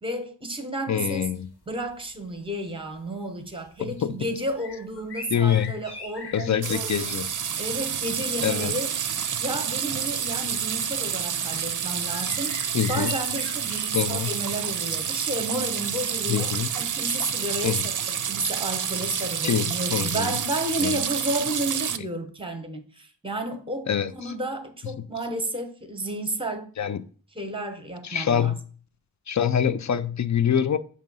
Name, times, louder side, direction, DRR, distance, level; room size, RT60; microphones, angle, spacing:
voice 1, 0.0-1.3 1.7-7.2 7.6-26.7 27.3-28.5, right 1 dB, 15° right, 1.0 m, -32 dB
voice 2, 0.9-1.5 3.8-4.2 5.3-5.7 6.3-7.3 8.4-8.7 12.7-13.1 13.9-14.3 16.3-16.7 17.6-17.8 19.4-20.3 20.8-20.9 23.9-24.1 26.8-27.0 28.0-28.6 29.3-30.8, left 8 dB, 50° left, 0.5 m, -25 dB
sound 1, 1.3-1.4 1.8-2.0 2.4-3.1 3.5-3.7 4.4-6.7 8.9-9.0 9.9-10.0 10.6-11.2 12.0-14.2, left 2 dB, 85° left, 1.7 m, -42 dB
sound 2, 6.6-22.0, right 8 dB, 55° right, 0.5 m, -29 dB
7.3 x 2.8 x 5.3 m
wide cardioid pair, 90°, 38 cm